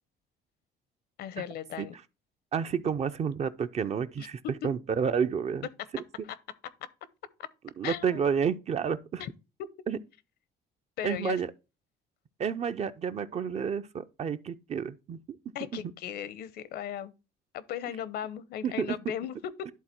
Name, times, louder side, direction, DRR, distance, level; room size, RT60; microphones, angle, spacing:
voice 1, 1.2-1.9 4.2-4.3 7.8-8.2 9.2-9.3 11.0-11.4 15.5-17.1 17.5-19.7, left 10 dB, 70° left, 0.8 m, -37 dB
voice 2, 2.5-5.7 7.8-9.2 9.9-10.0 11.0-11.5 12.4-15.2 15.7-15.8 18.6-19.0, right 7 dB, 40° right, 0.6 m, -30 dB
11.0 x 3.8 x 4.4 m
cardioid pair, 110°, 17 cm